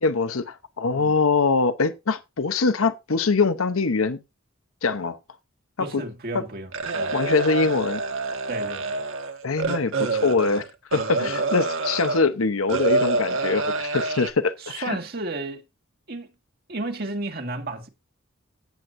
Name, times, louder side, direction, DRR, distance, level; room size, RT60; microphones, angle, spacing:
voice 1, 0.0-4.2 4.8-5.2 5.9-6.0 6.3-6.4 7.1-8.0 9.4-10.6 10.9-15.0, left 4 dB, 85° left, 0.9 m, -23 dB
voice 2, 5.8-7.2 8.5-9.0 11.1-11.3 14.6-15.6 16.1-16.3 16.7-17.9, right 2 dB, 50° right, 1.8 m, -33 dB
sound 1, 6.7-12.2 12.7-14.3, right 3 dB, 75° right, 1.8 m, -27 dB
16.5 x 8.0 x 2.6 m
head